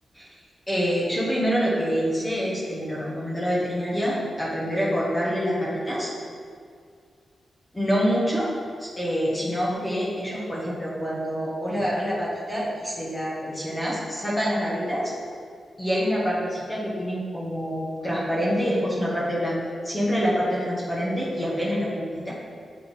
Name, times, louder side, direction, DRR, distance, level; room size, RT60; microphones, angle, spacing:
voice 1, 0.7-6.1 7.7-8.5 8.8-15.1 15.8-19.6 19.8-22.3, equal, 15° left, -7 dB, 1.2 m, -26 dB
7.9 x 4.1 x 3.5 m, 2.2 s
wide cardioid pair, 115°, 0 cm